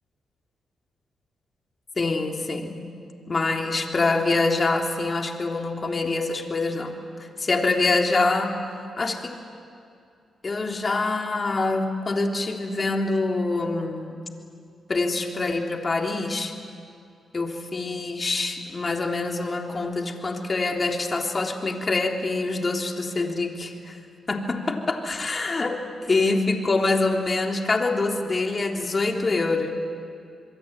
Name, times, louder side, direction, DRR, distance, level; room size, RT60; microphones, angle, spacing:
voice 1, 2.0-2.9 3.3-8.6 9.0-9.3 10.4-14.2 14.9-16.5 17.3-24.0 24.3-25.8 26.1-29.7, left 3 dB, 40° left, 2 dB, 3.5 m, -25 dB
26.5 x 22.5 x 9.3 m, 2.5 s
supercardioid pair, 55°, 0 cm